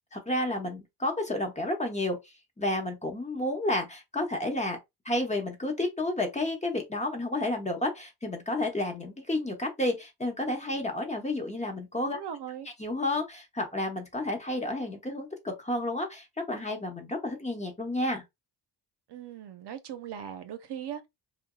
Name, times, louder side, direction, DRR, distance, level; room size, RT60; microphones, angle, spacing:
voice 1, 0.1-2.2 2.6-4.8 5.0-12.2 12.8-18.2, left 1 dB, 15° left, 1.0 m, -31 dB
voice 2, 12.0-12.7 19.1-21.1, right 9 dB, 65° right, 0.6 m, -39 dB
2.6 x 2.1 x 2.3 m
cardioid pair, 65°, 45 cm